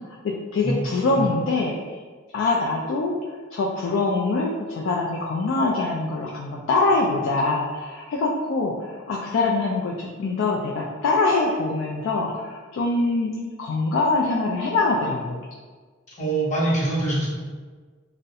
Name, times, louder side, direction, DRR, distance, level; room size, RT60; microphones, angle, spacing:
voice 1, 0.0-2.0 2.3-3.2 3.5-15.4, left 3 dB, 70° left, -2 dB, 0.3 m, -24 dB
voice 2, 16.2-17.3, right 2 dB, 40° left, -7 dB, 0.9 m, -24 dB
2.3 x 2.0 x 2.7 m, 1.4 s
head